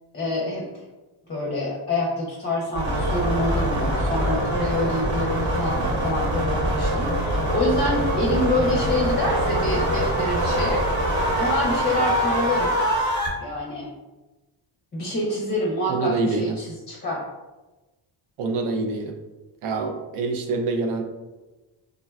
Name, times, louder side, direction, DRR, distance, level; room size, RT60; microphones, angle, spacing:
voice 1, 0.1-0.7 1.3-10.8 11.4-12.8 13.4-13.9 14.9-17.2, left 1 dB, 20° left, -2 dB, 0.5 m, -26 dB
sound 1, 2.7-13.3, equal, 60° right, 1.1 m, -24 dB
voice 2, 15.9-16.6 18.4-19.2 19.6-21.0, right 3 dB, 85° right, 4 dB, 0.5 m, -25 dB
3.5 x 2.1 x 2.3 m, 1.1 s
cardioid pair, 85°, 49 cm